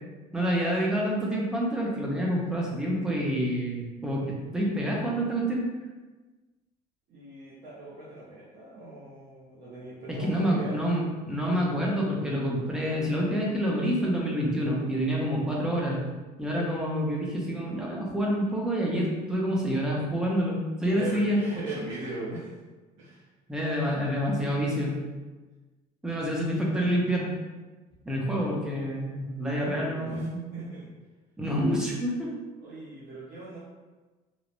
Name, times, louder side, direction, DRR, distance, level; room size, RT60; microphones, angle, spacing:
voice 1, 0.3-5.6 10.1-16.0 16.4-21.4 23.5-25.0 26.0-27.3 28.1-30.4 31.4-32.3, equal, 5° right, -3 dB, 0.4 m, -27 dB
voice 2, 7.1-10.8 20.9-22.6 23.0-23.2 28.3-28.4 29.2-30.9 31.6-31.8 32.6-33.6, right 2 dB, 50° right, -8 dB, 0.6 m, -40 dB
2.9 x 2.0 x 2.5 m, 1.2 s
cardioid pair, 160°, 16 cm